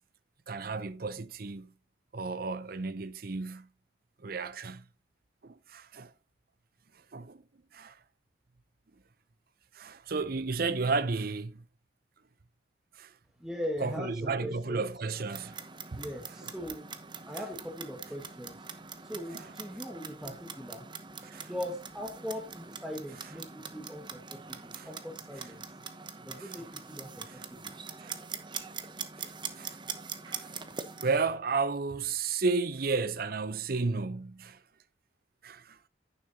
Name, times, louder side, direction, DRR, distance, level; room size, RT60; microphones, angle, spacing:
voice 1, 0.5-1.7 2.1-3.7 4.2-4.8 5.4-6.1 7.1-7.4 7.7-8.0 9.7-11.6 13.0-13.1 13.8-15.6 15.9-16.0 16.4-16.5 19.3-19.5 20.3-20.4 21.2-21.5 24.7-24.9 26.4-26.6 27.3-27.4 28.0-28.1 29.2-29.8 30.3-30.5 31.0-34.6 35.4-35.8, right 4 dB, 50° right, 0.7 m, -33 dB
voice 2, 13.4-14.8 15.9-16.9 17.3-18.7 19.0-20.8 21.5-25.6 26.2-27.7, equal, 5° right, 1.6 m, -40 dB
Clock, 15.1-31.2, right 6 dB, 25° right, 1.0 m, -43 dB
11.0 x 9.4 x 2.8 m
head